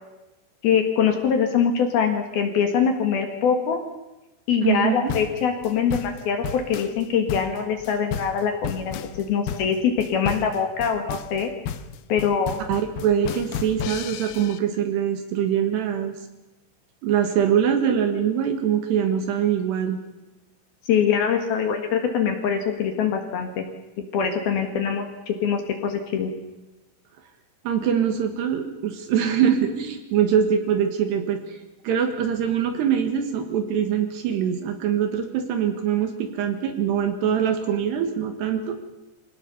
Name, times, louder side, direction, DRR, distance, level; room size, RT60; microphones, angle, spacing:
voice 1, 0.6-3.8 4.5-11.5 12.1-12.6 20.9-23.6 24.1-26.3, left 7 dB, 60° left, 5 dB, 3.2 m, -23 dB
voice 2, 4.6-5.1 12.7-16.2 17.0-20.0 27.6-31.4 31.8-38.8, right 8 dB, 70° right, 7 dB, 3.5 m, -23 dB
sound 1, 5.1-14.6, left 8 dB, 75° left, 2.3 m, -33 dB
25.0 x 17.5 x 7.0 m, 1.0 s
omnidirectional pair, 5.5 m